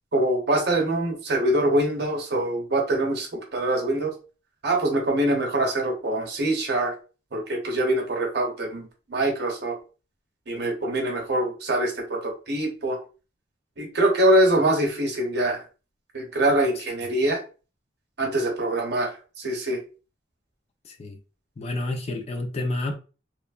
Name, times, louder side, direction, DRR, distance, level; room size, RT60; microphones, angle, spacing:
voice 1, 0.1-4.1 4.6-6.9 7.3-9.8 10.5-13.0 13.8-15.6 16.1-17.4 18.2-19.1 19.4-19.8, right 1 dB, 60° right, 0.8 m, -24 dB
voice 2, 20.8-21.2 21.6-22.9, left 2 dB, 35° left, 0.3 m, -29 dB
3.0 x 2.1 x 2.3 m
head